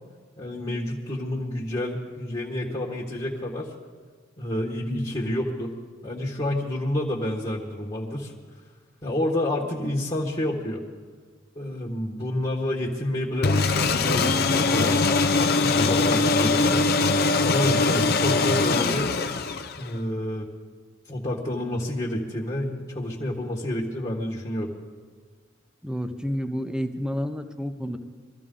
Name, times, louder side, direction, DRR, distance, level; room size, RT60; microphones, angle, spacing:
voice 1, 0.4-3.7 4.4-5.7 6.0-8.3 9.0-10.8 11.5-15.0 15.6-16.9 17.4-19.1 19.8-20.5 21.1-24.7, left 1 dB, 25° left, -4 dB, 1.4 m, -29 dB
sound 1, 13.4-20.0, left 3 dB, 50° left, 0.6 m, -22 dB
voice 2, 25.8-28.0, equal, 5° right, 7 dB, 0.7 m, -30 dB
22.0 x 13.5 x 3.8 m, 1.5 s
head